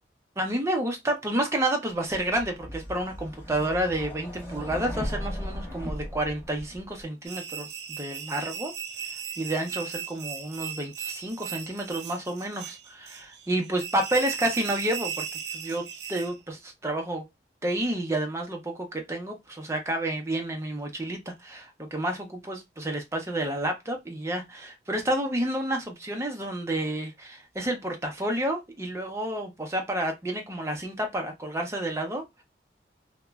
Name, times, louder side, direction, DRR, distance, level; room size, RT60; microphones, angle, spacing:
voice 1, 0.4-8.7 9.4-15.2 15.5-17.2 17.6-32.4, right 1 dB, 15° right, 0.6 m, -30 dB
sound 1, 2.1-7.0, equal, 15° left, 1.0 m, -37 dB
sound 2, 7.2-16.4, right 8 dB, 70° right, 0.5 m, -37 dB
2.9 x 2.1 x 2.2 m
head